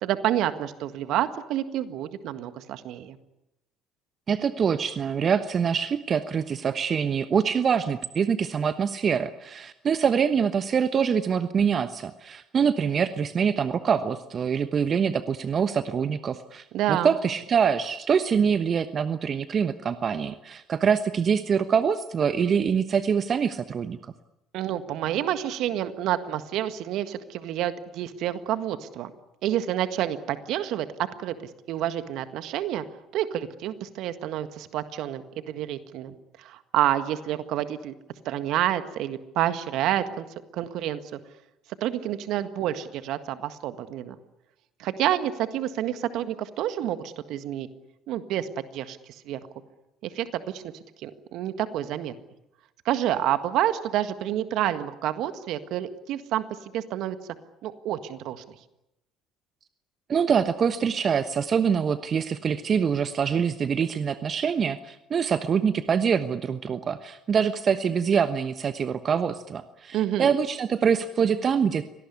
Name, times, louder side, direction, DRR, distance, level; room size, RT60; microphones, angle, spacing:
voice 1, 0.0-3.2 16.7-17.1 24.5-29.1 29.4-32.8 33.1-37.9 38.2-40.3 40.5-41.2 41.8-44.1 44.8-47.7 48.1-48.5 48.7-49.0 49.2-49.4 50.0-50.7 51.0-52.1 52.8-56.4 56.7-57.2 57.6-58.6 69.9-70.3, right 12 dB, 65° right, 11 dB, 1.7 m, -28 dB
voice 2, 4.3-24.0 60.1-71.8, right 7 dB, 45° right, 11 dB, 1.1 m, -25 dB
24.5 x 18.5 x 9.8 m, 0.92 s
hypercardioid pair, 60°, 0 cm